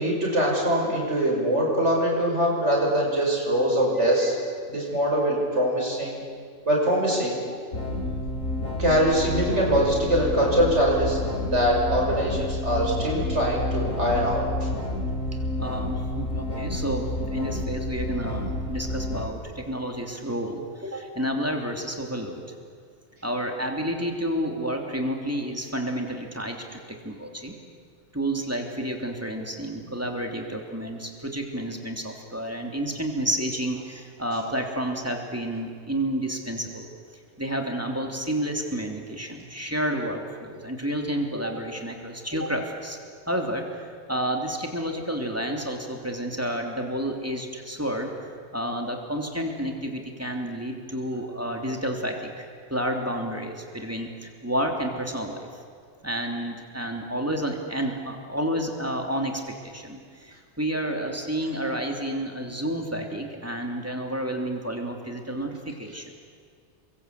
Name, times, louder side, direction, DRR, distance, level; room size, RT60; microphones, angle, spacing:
voice 1, 0.0-4.4 4.7-6.2 6.7-7.4 8.8-14.5, equal, 65° right, -2 dB, 6.4 m, -23 dB
sound 1, 7.7-19.3, left 1 dB, 90° left, 3.5 m, -29 dB
voice 2, 15.6-22.4 23.2-27.5 28.1-36.9 37.4-43.0 43.3-48.1 48.5-55.6 56.0-66.2, right 1 dB, 10° right, 2 dB, 3.2 m, -30 dB
29.5 x 23.5 x 8.4 m, 2.1 s
omnidirectional pair, 1.3 m